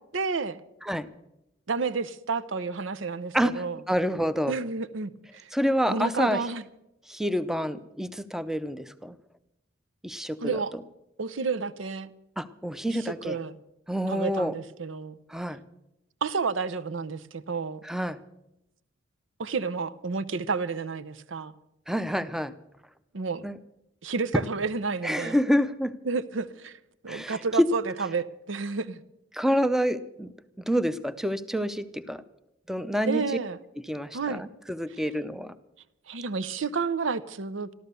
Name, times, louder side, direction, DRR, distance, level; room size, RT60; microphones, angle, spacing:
voice 1, 0.1-0.6 1.7-3.8 4.5-5.5 5.9-6.6 10.4-10.7 11.2-12.1 12.9-13.5 14.1-15.2 16.2-17.8 19.4-21.5 23.1-23.4 24.0-25.4 26.1-26.8 27.0-29.0 33.1-33.6 34.1-34.5 36.1-37.7, right 4 dB, 75° right, 14 dB, 0.7 m, -30 dB
voice 2, 3.3-4.6 5.5-6.4 7.1-9.2 10.0-10.8 12.4-13.4 13.9-14.5 15.3-15.6 17.8-18.2 21.9-22.5 23.4-23.6 24.3-24.4 25.0-26.0 27.1-27.7 29.3-30.3 30.7-32.2 32.7-33.2 33.9-35.5, equal, ahead, 13 dB, 0.6 m, -27 dB
14.0 x 13.5 x 6.8 m, 0.85 s
head